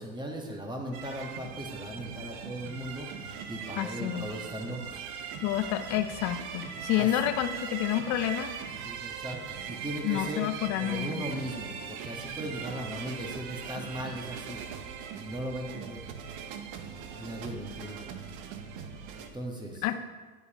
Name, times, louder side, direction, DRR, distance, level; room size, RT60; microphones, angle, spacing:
voice 1, 0.0-5.0 6.9-7.2 8.8-10.5 10.8-14.6 15.2-16.0 17.1-18.0 19.1-19.8, right 1 dB, 10° right, 1 dB, 1.3 m, -38 dB
sound 1, 0.9-19.3, right 7 dB, 50° right, 0.9 m, -40 dB
voice 2, 3.8-4.3 5.4-8.5 10.0-11.1 19.8-20.0, left 12 dB, 40° left, 10 dB, 0.6 m, -29 dB
9.6 x 8.1 x 3.0 m, 1.3 s
hypercardioid pair, 105°, 44 cm